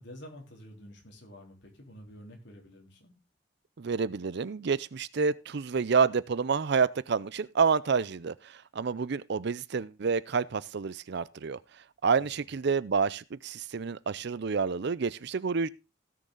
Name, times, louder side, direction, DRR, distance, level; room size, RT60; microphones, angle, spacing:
voice 1, 0.0-3.1 12.2-12.5, equal, 60° left, 3.6 m, -49 dB
voice 2, 3.8-11.6 12.0-15.7, right 5 dB, 60° right, 0.5 m, -28 dB
16.5 x 6.7 x 3.8 m
head